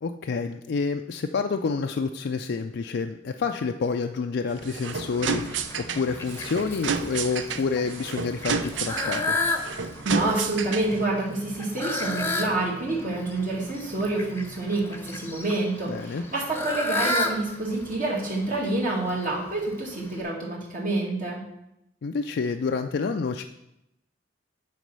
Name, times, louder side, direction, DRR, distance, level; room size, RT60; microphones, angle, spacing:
voice 1, 0.0-9.4 15.9-16.2 22.0-23.4, left 4 dB, 60° left, 6 dB, 0.4 m, -28 dB
sound 1, 4.5-11.1, right 6 dB, 70° right, 0.5 m, -31 dB
Fowl, 4.8-20.2, left 2 dB, 15° left, 0.8 m, -33 dB
voice 2, 10.0-21.4, right 2 dB, 45° right, -4 dB, 1.9 m, -28 dB
9.2 x 4.1 x 5.4 m, 0.84 s
head